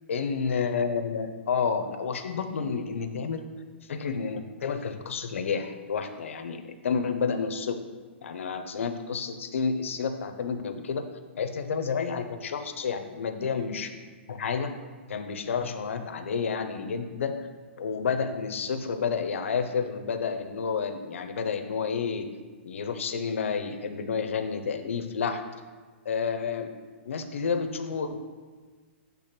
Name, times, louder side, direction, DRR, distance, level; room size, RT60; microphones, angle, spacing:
voice 1, 0.1-3.4 3.9-7.8 8.2-11.0 11.4-14.0 14.3-14.7 15.1-17.4 17.8-22.3 22.6-25.4 26.0-26.7 27.0-28.3, left 5 dB, 85° left, 8 dB, 0.8 m, -30 dB
8.4 x 3.5 x 5.9 m, 1.4 s
hypercardioid pair, 180°, 7 cm